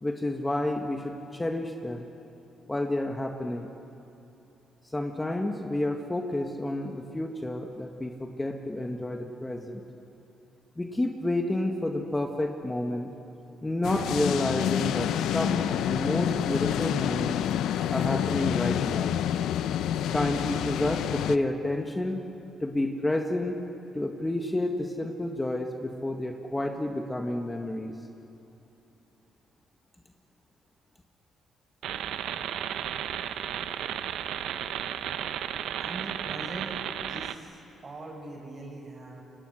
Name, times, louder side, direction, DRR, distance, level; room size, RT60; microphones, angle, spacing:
voice 1, 0.0-2.1 2.7-3.7 4.9-9.8 10.8-13.1 13.6-17.4 17.9-19.1 20.1-22.2 22.6-23.6 23.9-28.0, left 1 dB, 15° left, 3 dB, 1.7 m, -30 dB
sound 1, 13.8-21.4, left 10 dB, 85° left, 0.7 m, -28 dB
sound 2, 31.8-37.4, right 10 dB, 85° right, 0.9 m, -34 dB
voice 2, 35.8-36.8 37.1-39.2, right 2 dB, 40° right, 0 dB, 6.8 m, -42 dB
28.5 x 25.0 x 6.4 m, 2.9 s
cardioid pair, 90°, 0 cm